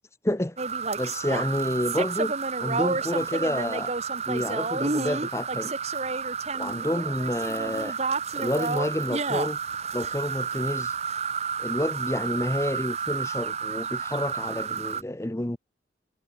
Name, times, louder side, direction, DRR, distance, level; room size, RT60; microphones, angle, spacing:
voice 1, 0.2-0.6 1.0-2.3 2.6-3.9 4.3-5.7 6.6-8.0 8.3-9.6 9.9-10.9 11.6-15.6, left 1 dB, 15° left, 0.8 m, -29 dB
sound 1, 0.6-15.0, right 5 dB, 35° right, 1.3 m, -30 dB
head